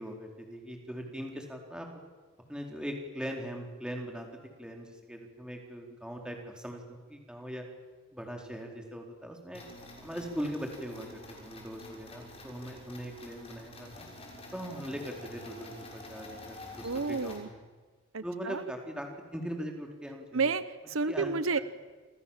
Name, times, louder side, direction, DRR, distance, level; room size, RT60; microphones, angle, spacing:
voice 1, 0.0-1.9 2.5-4.3 4.6-7.7 8.1-9.7 10.0-14.1 14.5-17.6 18.2-20.5 21.1-21.6, equal, 5° right, 1 dB, 4.2 m, -40 dB
sound 1, 9.5-17.4, left 1 dB, 30° left, 6.3 m, -48 dB
voice 2, 16.8-17.5 18.1-18.6 20.3-21.6, right 4 dB, 75° right, 14 dB, 0.9 m, -31 dB
29.0 x 27.0 x 7.5 m, 1.3 s
head